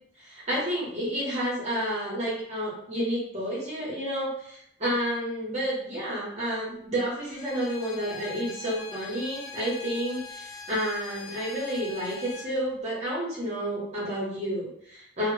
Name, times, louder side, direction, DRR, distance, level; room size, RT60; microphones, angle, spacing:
voice 1, 0.2-15.3, equal, 35° right, -6 dB, 0.8 m, -30 dB
Bowed string instrument, 7.2-12.5, left 5 dB, 80° left, 0.4 m, -43 dB
2.0 x 2.0 x 3.0 m, 0.72 s
head